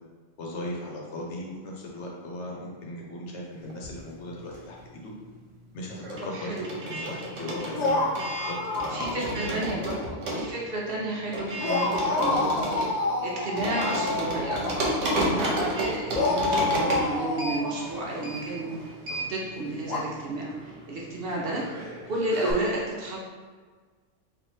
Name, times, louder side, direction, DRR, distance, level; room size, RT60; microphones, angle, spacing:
voice 1, 0.4-5.1 5.7-10.1, left 1 dB, 70° left, -2 dB, 1.0 m, -38 dB
sound 1, 3.7-5.0 5.2-22.5, right 1 dB, 75° right, 1.2 m, -33 dB
voice 2, 6.3-6.6 8.9-9.8 10.3-12.6 13.2-21.6 22.1-23.2, right 1 dB, 55° right, -3 dB, 0.8 m, -32 dB
sound 2, 7.7-9.6 9.9-10.1 11.6-15.4 16.1-18.5 19.8-20.0, left 2 dB, 45° left, 0.7 m, -28 dB
3.2 x 2.6 x 4.2 m, 1.5 s
omnidirectional pair, 1.3 m